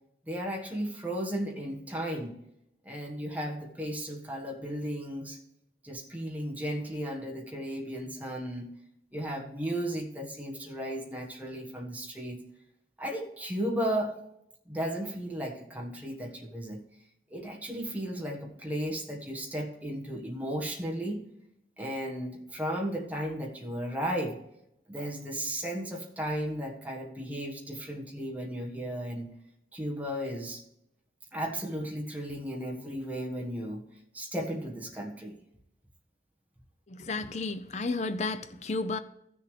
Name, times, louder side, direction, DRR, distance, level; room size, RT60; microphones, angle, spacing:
voice 1, 0.3-2.3 2.8-5.4 5.8-8.7 9.1-12.4 13.0-14.2 14.6-16.8 17.3-21.2 21.8-24.4 24.9-29.3 29.7-30.6 31.3-33.8 34.1-35.4, equal, 10° right, 1.4 m, -35 dB
voice 2, 36.9-39.0, left 3 dB, 40° left, 0.5 m, -32 dB
14.5 x 6.7 x 3.3 m
head